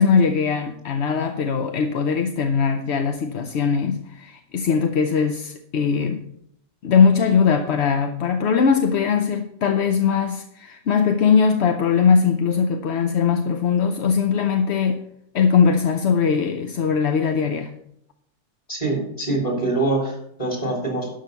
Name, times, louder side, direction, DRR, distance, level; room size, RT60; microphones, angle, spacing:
voice 1, 0.0-6.3 6.8-15.0 15.3-17.7, left 6 dB, 60° left, 0.8 m, -20 dB
voice 2, 18.7-21.1, right 2 dB, 25° left, 3.5 m, -24 dB
11.5 x 5.6 x 6.7 m
omnidirectional pair, 1.6 m